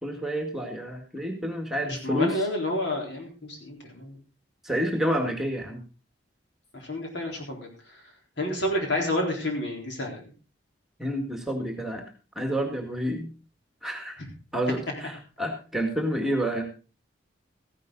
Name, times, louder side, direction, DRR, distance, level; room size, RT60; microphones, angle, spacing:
voice 1, 0.0-2.3 4.6-5.8 11.0-12.0 12.4-13.3 13.8-14.2 14.5-16.6, equal, ahead, 3 dB, 2.0 m, -29 dB
voice 2, 1.8-4.2 6.7-8.0 8.4-10.3 14.2-14.3, left 1 dB, 65° left, 1 dB, 4.0 m, -30 dB
14.5 x 11.0 x 3.9 m, 0.34 s
head